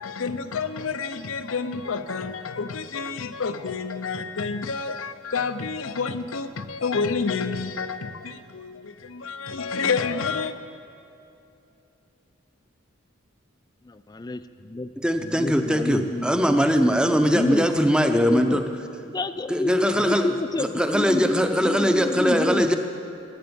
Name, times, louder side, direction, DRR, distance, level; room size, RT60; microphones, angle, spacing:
voice 1, 0.0-10.5, left 5 dB, 90° left, 0.7 m, -29 dB
voice 2, 13.8-14.9 15.2-16.6 17.3-18.6 19.1-22.7, left 2 dB, 20° left, 0.3 m, -29 dB
voice 3, 15.0-18.6 19.5-20.3 20.7-22.7, equal, 5° right, 0.7 m, -21 dB
16.0 x 9.9 x 7.0 m
head